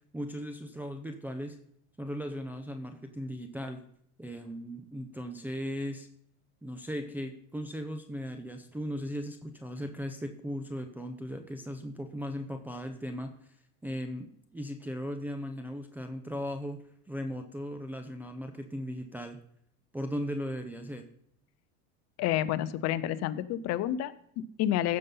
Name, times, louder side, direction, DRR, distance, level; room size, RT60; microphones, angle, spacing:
voice 1, 0.1-1.6 2.0-3.8 4.2-6.1 6.6-13.3 13.8-14.3 14.5-19.4 19.9-21.0, equal, 5° right, 4 dB, 0.6 m, -37 dB
voice 2, 22.2-25.0, left 12 dB, 40° left, 14 dB, 0.7 m, -30 dB
15.0 x 5.6 x 5.5 m, 0.68 s
supercardioid pair, 130°, 40 cm